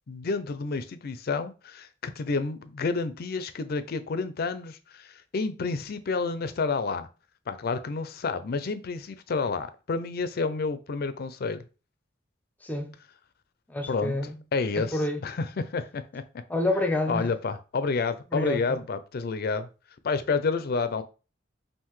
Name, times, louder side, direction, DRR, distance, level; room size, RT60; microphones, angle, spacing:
voice 1, 0.1-7.1 7.5-11.6 13.9-14.2 14.5-16.2 17.1-19.7 20.0-21.0, left 4 dB, 55° left, 0.4 m, -29 dB
voice 2, 12.6-12.9 13.7-14.4 14.8-15.2 16.5-17.3 18.3-18.8, left 1 dB, 10° left, 0.6 m, -28 dB
5.6 x 2.6 x 3.1 m
head